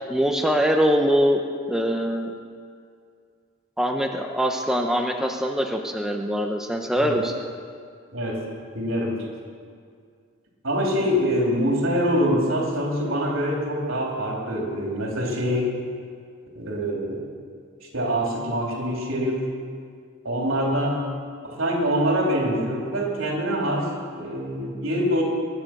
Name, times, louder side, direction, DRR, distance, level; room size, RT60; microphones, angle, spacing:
voice 1, 0.1-2.3 3.8-7.3, equal, ahead, 2 dB, 0.8 m, -23 dB
voice 2, 8.1-8.4 8.7-9.2 10.6-15.7 16.6-17.2 17.9-19.4 20.2-21.1 21.4-25.2, equal, 80° right, -1 dB, 3.5 m, -24 dB
22.5 x 9.2 x 6.2 m, 2.2 s
head